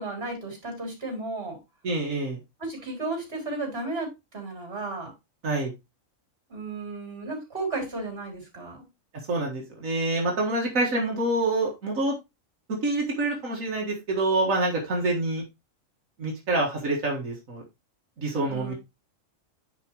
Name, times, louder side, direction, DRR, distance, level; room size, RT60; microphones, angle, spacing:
voice 1, 0.0-1.6 2.6-5.1 6.5-8.8 18.5-18.7, right 2 dB, 50° right, 2 dB, 4.2 m, -34 dB
voice 2, 1.8-2.4 5.4-5.7 9.3-12.1 12.8-15.4 16.2-17.6 18.2-18.7, right 2 dB, 90° right, -1 dB, 2.2 m, -26 dB
9.8 x 5.3 x 3.0 m, 0.23 s
omnidirectional pair, 1.4 m